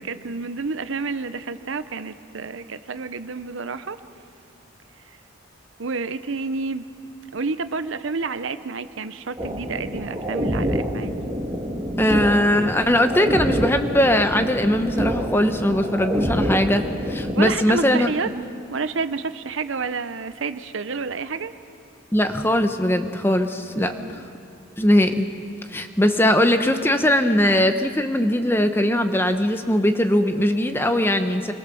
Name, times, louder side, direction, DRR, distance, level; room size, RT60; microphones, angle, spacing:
voice 1, 0.0-4.0 5.8-6.9 7.3-11.1 17.3-18.3 18.7-21.5 23.8-24.2, right 4 dB, 70° right, 12 dB, 0.8 m, -29 dB
sound 1, 9.4-17.6, equal, 20° right, 1.9 m, -27 dB
voice 2, 12.0-18.1 22.1-23.9 24.8-25.3 25.7-31.5, left 1 dB, 10° left, 8 dB, 0.9 m, -20 dB
25.5 x 22.0 x 7.1 m, 2.5 s
head